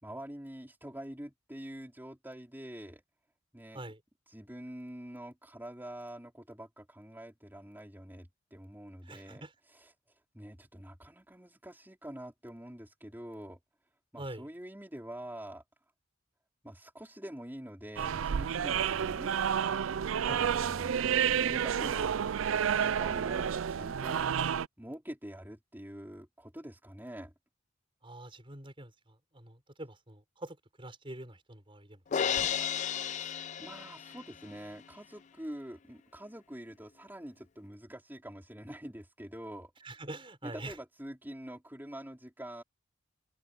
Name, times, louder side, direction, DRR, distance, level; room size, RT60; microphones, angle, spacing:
voice 1, 0.0-3.0 3.5-3.8 4.3-13.6 14.1-15.6 16.6-19.4 20.2-21.0 21.2-22.2 22.8-27.3 32.9-33.3 33.6-39.7 40.4-42.6, right 1 dB, 10° right, 4.2 m, -46 dB
voice 2, 9.1-9.5 14.2-14.5 20.3-20.4 28.0-32.0 39.8-40.7, right 1 dB, 25° right, 5.3 m, -45 dB
sound 1, 18.0-24.7, right 8 dB, 90° right, 0.4 m, -30 dB
Crash cymbal, 32.1-34.4, left 8 dB, 40° left, 0.4 m, -33 dB
open air
head